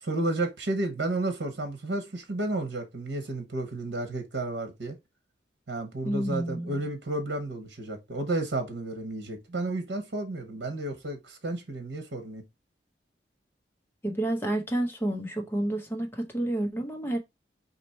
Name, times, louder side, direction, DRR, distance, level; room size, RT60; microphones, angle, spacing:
voice 1, 0.0-5.0 5.7-12.4, right 2 dB, 80° right, 1.1 m, -32 dB
voice 2, 6.0-6.8 14.0-17.2, right 1 dB, 10° left, 0.9 m, -30 dB
4.3 x 2.9 x 4.3 m
head